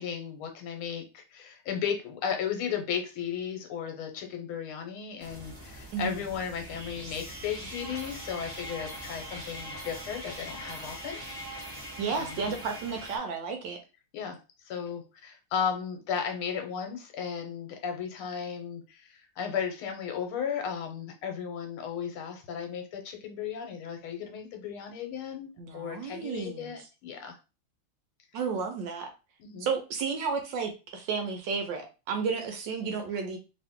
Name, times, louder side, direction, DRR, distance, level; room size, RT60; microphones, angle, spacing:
voice 1, 0.0-11.2 12.1-12.5 14.1-14.4 14.7-27.4 29.4-29.7, left 7 dB, 80° left, 4 dB, 1.6 m, -35 dB
sound 1, 5.2-13.2, equal, 10° right, 1.2 m, -42 dB
voice 2, 5.9-6.2 12.0-13.8 25.6-26.8 28.3-29.1 29.6-33.4, right 5 dB, 70° right, 4 dB, 1.2 m, -32 dB
3.1 x 2.9 x 3.5 m, 0.30 s
omnidirectional pair, 2.3 m